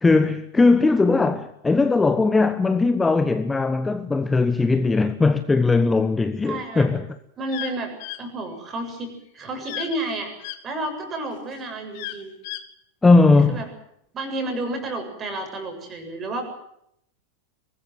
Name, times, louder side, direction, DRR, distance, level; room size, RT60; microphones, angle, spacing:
voice 1, 0.0-7.1 13.0-13.6, left 3 dB, 10° left, 1.2 m, -19 dB
voice 2, 6.4-6.9 7.4-10.3 10.6-12.3 13.5-13.7 14.1-16.4, right 2 dB, 25° right, 7.6 m, -31 dB
sound 1, 7.5-7.7 8.0-8.2 9.6-10.0 10.4-10.6 11.9-12.6, left 15 dB, 50° left, 1.9 m, -33 dB
23.5 x 20.5 x 8.0 m
figure-of-eight pair, 90°, 0 cm